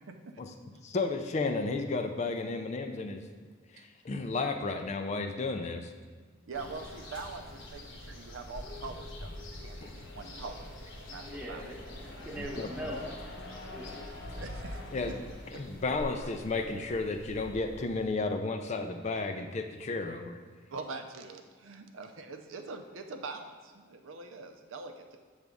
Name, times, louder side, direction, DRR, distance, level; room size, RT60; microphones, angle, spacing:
voice 1, 0.1-0.7 6.5-9.3 9.6-11.6 14.3-14.8 15.5-15.6 16.2-16.3 20.7-25.2, right 3 dB, 80° right, 6 dB, 0.6 m, -43 dB
voice 2, 0.8-3.2 3.7-5.9 9.8-9.9 12.4-12.7 14.9-15.2 15.5-20.4, left 3 dB, 35° left, 6 dB, 0.4 m, -33 dB
sound 1, 6.5-18.1, left 1 dB, 65° left, 1.1 m, -44 dB
voice 3, 11.3-13.1 13.7-14.0, equal, 5° right, -3 dB, 1.0 m, -41 dB
7.3 x 3.4 x 5.2 m, 1.5 s
head